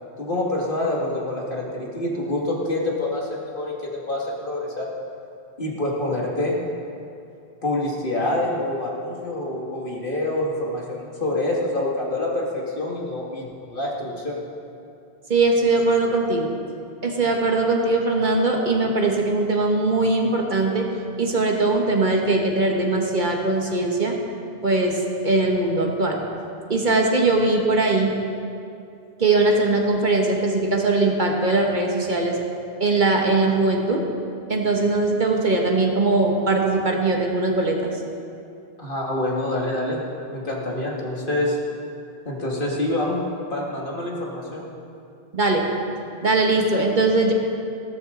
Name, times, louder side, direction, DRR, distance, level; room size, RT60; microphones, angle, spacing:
voice 1, 0.2-4.9 5.6-6.6 7.6-14.4 38.8-40.0 40.3-41.6 42.3-43.2 43.5-44.7, left 1 dB, 55° left, -3 dB, 2.2 m, -26 dB
voice 2, 15.3-16.5 17.0-20.9 21.2-24.2 24.6-25.0 25.2-26.2 26.7-28.1 29.2-32.4 32.8-34.0 34.5-37.9 45.3-45.7 46.2-47.3, right 2 dB, 50° right, 1 dB, 1.4 m, -20 dB
15.5 x 13.5 x 3.8 m, 2.5 s
omnidirectional pair, 1.0 m